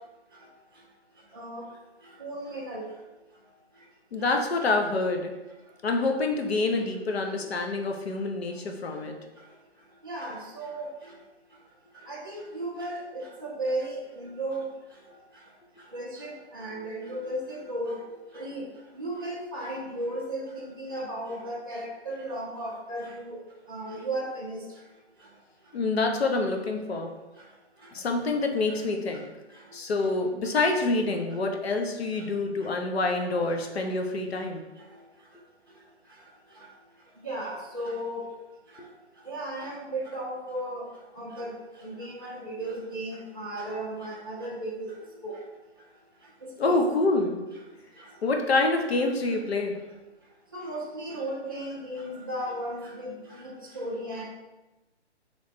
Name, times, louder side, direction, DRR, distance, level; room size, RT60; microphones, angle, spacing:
voice 1, 2.2-2.8 10.0-10.9 12.1-14.7 15.9-18.0 18.3-18.6 19.0-23.4 23.7-24.6 37.2-38.2 39.3-40.9 41.2-41.5 41.8-44.9 45.2-45.4 46.6-46.8 50.5-53.1 53.4-54.2, right 1 dB, 20° right, -9 dB, 0.5 m, -35 dB
voice 2, 4.1-5.3 5.8-9.1 25.7-27.1 27.9-29.3 29.7-34.6 38.8-38.9 46.6-47.4 48.2-49.8, left 3 dB, 65° left, 3 dB, 0.8 m, -27 dB
3.2 x 3.1 x 4.1 m, 1.1 s
hypercardioid pair, 175°, 34 cm